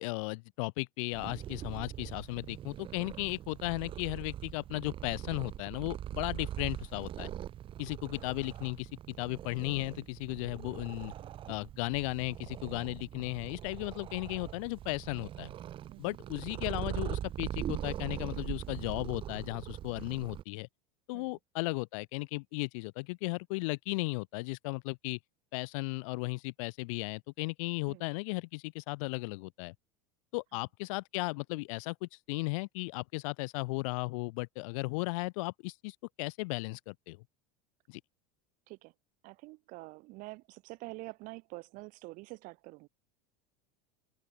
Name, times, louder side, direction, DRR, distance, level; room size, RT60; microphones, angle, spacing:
voice 1, 0.0-7.3 7.8-11.1 11.5-15.5 16.0-20.7 21.1-25.2 25.5-29.7 30.3-37.2 37.9-38.0, left 26 dB, 65° left, 1.5 m, -36 dB
Purr, 1.1-20.4, right 11 dB, 30° right, 1.3 m, -42 dB
voice 2, 39.2-42.9, right 23 dB, 50° right, 2.7 m, -47 dB
open air
supercardioid pair, 155°, 18 cm